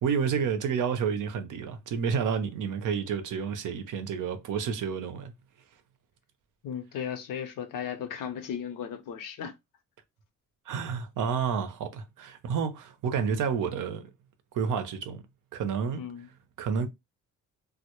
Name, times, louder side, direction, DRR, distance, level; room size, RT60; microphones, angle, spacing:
voice 1, 0.0-5.3 10.7-14.1 14.5-15.2 15.5-16.0 16.6-16.9, right 6 dB, 75° right, 0.6 m, -30 dB
voice 2, 6.6-9.5 16.0-16.3, left 8 dB, 85° left, 0.6 m, -36 dB
2.1 x 2.0 x 2.9 m
cardioid pair, 85°, 32 cm